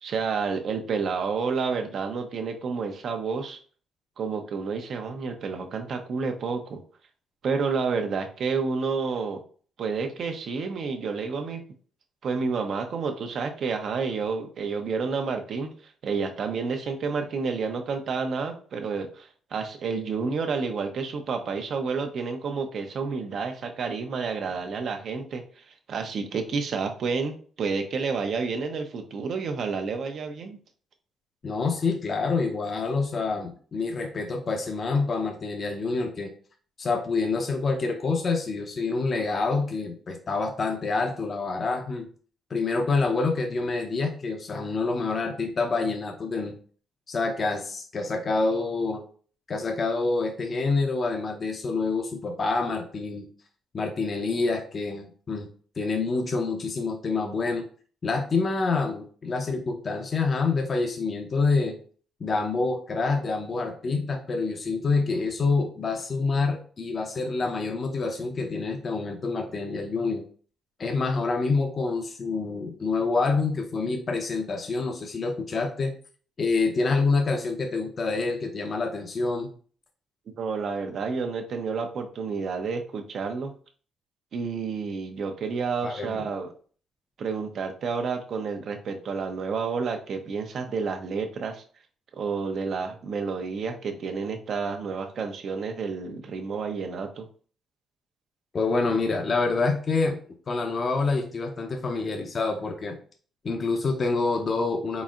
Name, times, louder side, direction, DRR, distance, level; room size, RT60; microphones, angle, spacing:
voice 1, 0.0-3.6 4.2-6.8 7.4-9.4 9.8-11.6 12.2-15.7 16.0-30.6 80.4-83.5 84.3-86.5 87.2-91.6 92.1-97.3, right 5 dB, 60° right, 4 dB, 0.8 m, -30 dB
voice 2, 31.4-36.3 36.8-42.1 42.5-46.6 47.1-49.0 49.5-53.3 53.7-55.5 55.8-57.7 58.0-61.8 62.2-70.2 70.8-75.9 76.4-79.5 85.8-86.3 98.5-100.2 100.5-103.0 103.4-105.0, left 3 dB, 40° left, 3 dB, 0.7 m, -27 dB
4.2 x 4.0 x 2.5 m, 0.43 s
cardioid pair, 90°, 0 cm